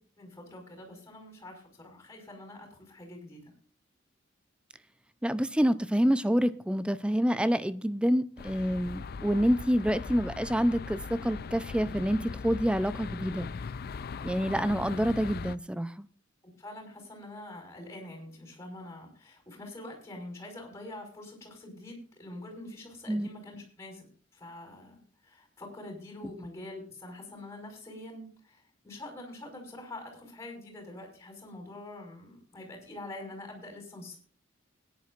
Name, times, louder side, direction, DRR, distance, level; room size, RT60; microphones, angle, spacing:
voice 1, 0.2-3.4 16.4-24.1 24.3-34.2, left 1 dB, 15° left, 5.3 m, -45 dB
voice 2, 5.2-13.5 14.2-15.9 23.1-23.3, equal, 5° right, 0.6 m, -27 dB
sound 1, 8.4-15.6, left 5 dB, 50° left, 0.5 m, -39 dB
21.0 x 10.5 x 2.5 m
head